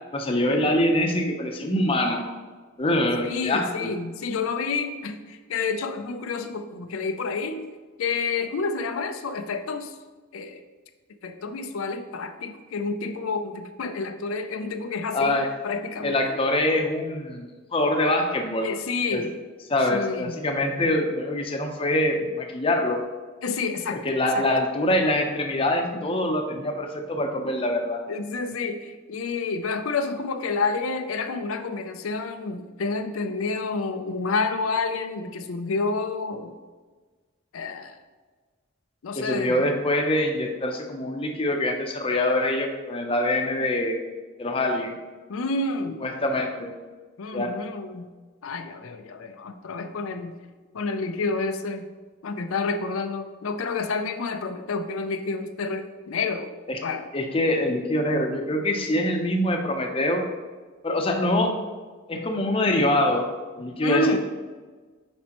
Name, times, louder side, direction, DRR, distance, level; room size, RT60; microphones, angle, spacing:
voice 1, 0.1-2.3 2.8-3.9 15.1-15.5 16.0-18.7 19.1-19.2 19.7-23.1 24.0-28.0 39.2-44.0 44.4-44.9 46.0-46.7 47.3-47.6 56.7-56.8 57.1-60.2 60.8-61.6 62.1-63.3 63.6-64.2, left 1 dB, 25° left, 3 dB, 0.6 m, -24 dB
voice 2, 3.2-7.6 8.0-10.0 10.3-10.6 11.2-16.4 18.6-19.3 19.9-20.3 23.4-24.0 24.3-24.5 28.1-36.5 37.5-38.0 39.0-39.7 45.3-46.0 47.2-48.1 48.4-50.4 50.7-51.9 52.2-56.5 56.8-57.1 63.8-64.2, left 4 dB, 90° left, 7 dB, 0.5 m, -29 dB
7.4 x 5.3 x 3.0 m, 1.4 s
head